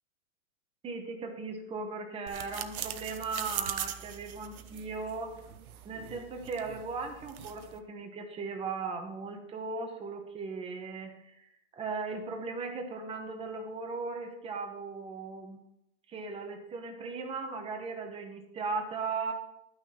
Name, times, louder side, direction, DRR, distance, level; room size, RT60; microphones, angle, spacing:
voice 1, 0.8-5.3 5.8-11.5 11.8-15.6 16.1-19.3, right 4 dB, 15° right, 4 dB, 1.1 m, -37 dB
sound 1, 2.3-7.8, right 10 dB, 90° right, 0.9 m, -41 dB
11.5 x 6.2 x 4.4 m, 0.81 s
hypercardioid pair, 145°, 42 cm